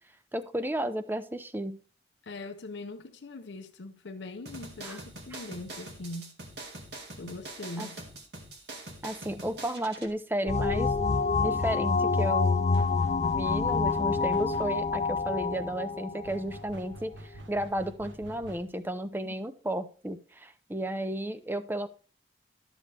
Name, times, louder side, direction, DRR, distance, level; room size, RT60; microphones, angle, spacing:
voice 1, 0.3-1.8 4.8-5.0 7.8-7.9 9.0-10.9 11.4-12.9 13.3-21.9, right 1 dB, 10° right, 0.6 m, -33 dB
voice 2, 2.2-6.4 7.2-8.0, left 2 dB, 75° left, 0.7 m, -41 dB
sound 1, 4.5-10.1, right 2 dB, 60° right, 1.9 m, -44 dB
sound 2, 10.5-16.9, left 4 dB, 35° left, 0.3 m, -27 dB
sound 3, 12.7-15.0 16.2-18.9, right 1 dB, 75° right, 0.9 m, -47 dB
12.0 x 7.0 x 3.4 m
head